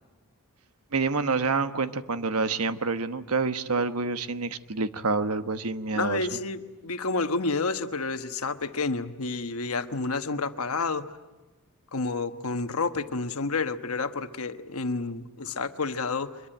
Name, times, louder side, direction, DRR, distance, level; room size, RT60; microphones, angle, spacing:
voice 1, 0.9-6.3, right 4 dB, 75° right, 10 dB, 1.1 m, -27 dB
voice 2, 5.9-11.2 11.9-16.4, left 3 dB, 70° left, 9 dB, 1.2 m, -30 dB
24.5 x 22.5 x 9.1 m, 1.2 s
head